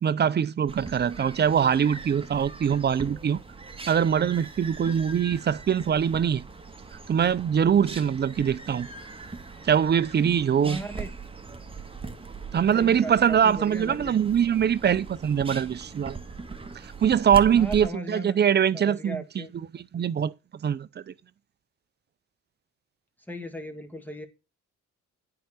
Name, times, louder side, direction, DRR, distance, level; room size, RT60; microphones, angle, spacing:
voice 1, 0.0-3.4 3.9-6.4 7.1-8.9 9.6-10.8 12.5-16.2 17.0-19.5 19.7-20.3 20.6-21.1, right 8 dB, 35° right, 0.5 m, -23 dB
sound 1, 0.7-17.9, right 4 dB, 20° right, 1.5 m, -41 dB
voice 2, 10.6-11.1 12.7-14.2 17.5-18.4 18.7-19.5 23.3-24.3, right 1 dB, 5° left, 2.1 m, -37 dB
9.4 x 4.8 x 6.2 m
cardioid pair, 90°, 30 cm